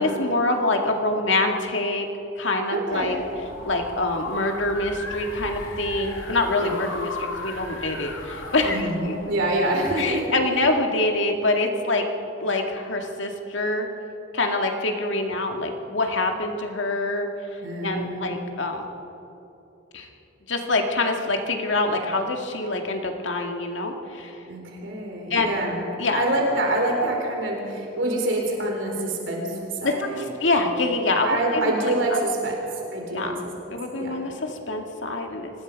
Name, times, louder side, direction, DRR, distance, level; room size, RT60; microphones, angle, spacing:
voice 1, 0.0-2.1 2.4-3.2 3.6-9.1 10.0-12.0 12.4-13.9 14.3-17.3 17.8-18.9 19.9-20.1 20.5-24.4 25.3-25.5 26.0-26.3 29.8-31.9 33.1-33.4 33.7-35.5, left 2 dB, 70° left, 3 dB, 2.0 m, -25 dB
voice 2, 2.7-3.1 6.6-6.7 8.6-10.4 17.6-18.3 24.5-25.8 26.1-30.3 31.2-32.6 32.9-33.3 33.9-34.2, right 1 dB, 70° right, 0 dB, 4.0 m, -26 dB
sound 1, 3.0-10.1, left 2 dB, 90° left, 2.3 m, -36 dB
25.0 x 19.5 x 5.3 m, 2.9 s
head